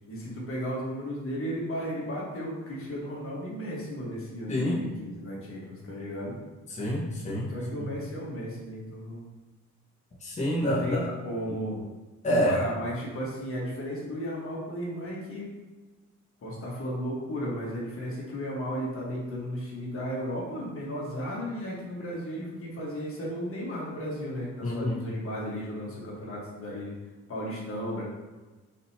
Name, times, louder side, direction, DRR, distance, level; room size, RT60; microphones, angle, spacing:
voice 1, 0.1-6.3 7.5-9.2 10.6-11.8 12.3-15.5 16.4-27.0 27.3-28.0, equal, 45° left, -4 dB, 1.4 m, -34 dB
voice 2, 4.5-4.8 6.7-7.5 7.8-7.9 10.2-11.1 12.2-12.6 24.6-25.0, equal, 25° left, -7 dB, 1.2 m, -27 dB
4.3 x 3.9 x 2.8 m, 1.3 s
cardioid pair, 90°, 30 cm